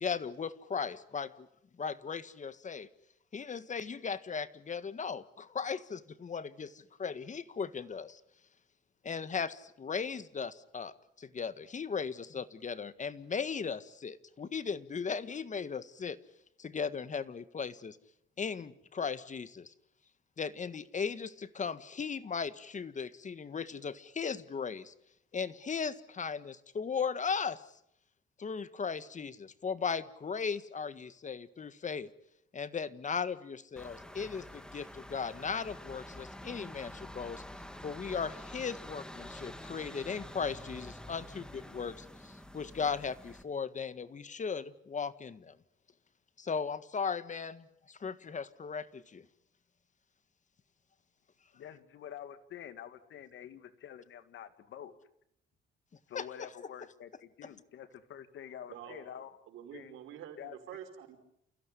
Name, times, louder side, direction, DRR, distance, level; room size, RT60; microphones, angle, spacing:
voice 1, 0.0-1.5 1.8-2.9 3.3-8.2 9.0-16.2 16.6-18.0 18.4-19.7 20.4-24.9 25.3-27.6 28.4-32.1 32.5-37.4 37.8-45.5 46.4-49.2 56.2-56.3, left 6 dB, 40° left, 13 dB, 1.6 m, -37 dB
sound 1, 33.8-43.4, left 1 dB, 5° left, 2.7 m, -47 dB
voice 2, 51.5-54.9 56.1-59.4 59.7-59.9 60.4-60.6, left 9 dB, 70° left, 10 dB, 2.5 m, -47 dB
voice 3, 58.7-59.1 59.5-61.2, right 9 dB, 90° right, 6 dB, 5.2 m, -47 dB
29.5 x 16.0 x 9.9 m, 0.75 s
cardioid pair, 90°, 20 cm